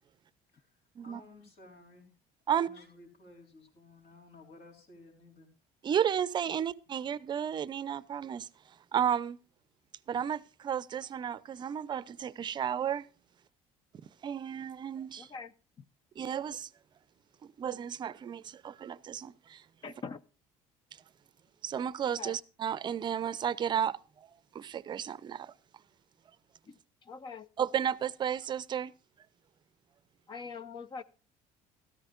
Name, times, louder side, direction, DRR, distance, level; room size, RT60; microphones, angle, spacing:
voice 1, 1.0-2.1 2.5-5.5, left 2 dB, 55° left, 3.9 m, -55 dB
voice 2, 5.8-9.4 10.1-13.1 14.0-15.3 16.2-16.7 17.4-19.9 20.9-21.0 21.6-25.5 26.3-26.4 27.6-28.9, right 9 dB, 35° right, 0.6 m, -33 dB
voice 3, 15.2-15.5 19.8-20.2 22.2-22.3 26.7-26.8 27.1-27.5 30.3-31.0, left 5 dB, 35° left, 0.6 m, -42 dB
13.5 x 13.5 x 2.5 m
cardioid pair, 145°, 14 cm